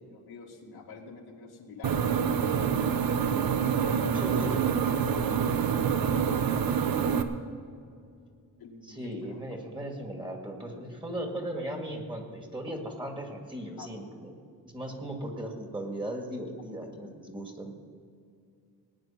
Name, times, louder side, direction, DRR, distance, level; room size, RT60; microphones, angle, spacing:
voice 1, 0.1-3.5 4.9-5.7 8.6-9.0 13.8-13.9, left 4 dB, 80° left, 0 dB, 2.2 m, -47 dB
sound 1, 1.8-7.2, right 7 dB, 65° right, 1.0 m, -26 dB
voice 2, 4.1-4.6 8.8-14.4 14.7-17.8, right 1 dB, 15° right, 2 dB, 2.1 m, -37 dB
18.5 x 9.7 x 5.7 m, 2.3 s
wide cardioid pair, 125°, 37 cm